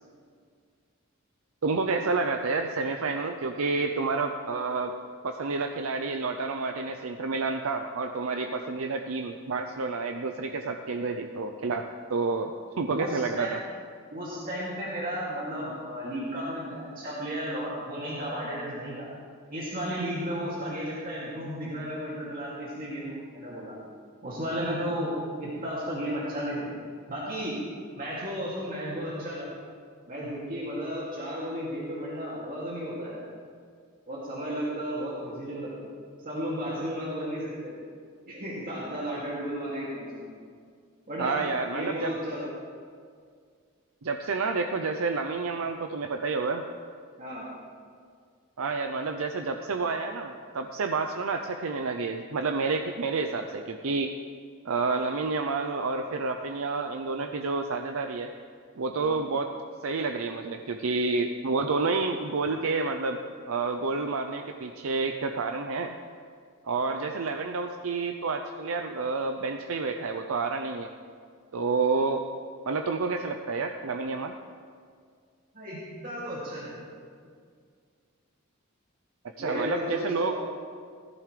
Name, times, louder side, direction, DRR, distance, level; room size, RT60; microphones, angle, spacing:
voice 1, 1.6-4.9 5.2-13.6 41.2-42.1 44.0-46.7 48.6-54.1 54.6-58.3 58.8-59.5 59.8-63.2 63.5-65.9 66.6-70.9 71.5-72.3 72.7-74.4 79.4-80.3, right 4 dB, 75° right, 5 dB, 0.6 m, -29 dB
voice 2, 12.9-13.5 14.1-19.1 19.5-23.8 24.2-26.7 27.1-27.6 27.9-29.5 30.1-33.3 34.1-35.9 36.2-37.7 38.3-40.3 41.1-41.4 41.7-42.5 47.2-47.5 58.9-59.2 75.5-76.8 79.4-80.3, equal, 40° right, -7 dB, 2.6 m, -34 dB
17.0 x 14.5 x 3.3 m, 2.1 s
head